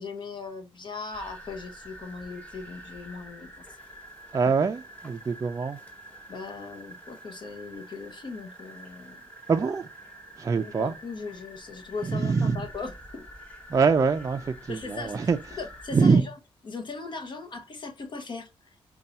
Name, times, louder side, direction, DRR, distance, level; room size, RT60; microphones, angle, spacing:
voice 1, 0.0-3.8 6.3-9.2 10.6-13.3 14.7-15.2 15.6-16.3 16.6-18.8, left 4 dB, 50° left, 0.9 m, -39 dB
sound 1, 1.1-16.1, right 1 dB, 15° left, 1.7 m, -47 dB
voice 2, 4.3-5.8 9.5-9.9 10.4-10.9 12.0-12.7 13.7-15.4 15.9-16.2, right 5 dB, 35° right, 0.4 m, -24 dB
5.3 x 2.3 x 4.0 m
cardioid pair, 85°, 10 cm